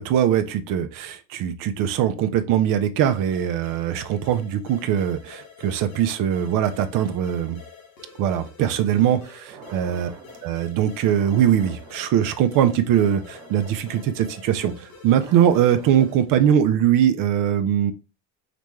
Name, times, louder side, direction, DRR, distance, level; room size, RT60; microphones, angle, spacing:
voice 1, 0.0-7.6 8.2-10.1 10.4-17.9, right 10 dB, 55° right, 9 dB, 0.6 m, -21 dB
sound 1, 3.0-16.3, left 6 dB, 90° left, 1.5 m, -47 dB
sound 2, 9.5-10.5 10.9-16.2, right 6 dB, 90° right, 1.1 m, -46 dB
5.0 x 2.2 x 3.1 m, 0.31 s
supercardioid pair, 105°, 39 cm